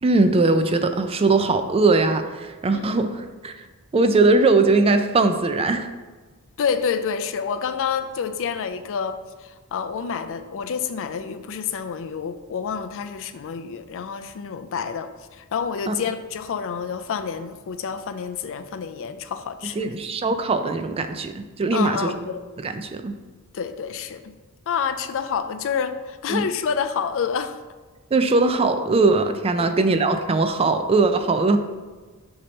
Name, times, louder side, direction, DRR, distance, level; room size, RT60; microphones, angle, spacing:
voice 1, 0.0-3.6 3.9-5.9 15.9-16.0 19.8-22.1 22.6-23.1 26.3-26.4 28.1-31.6, right 3 dB, 25° right, 8 dB, 0.4 m, -20 dB
voice 2, 6.6-20.0 21.7-22.4 23.5-24.3 24.7-27.6 29.6-29.7, left 6 dB, 65° left, 9 dB, 0.4 m, -28 dB
6.6 x 2.9 x 5.2 m, 1.4 s
head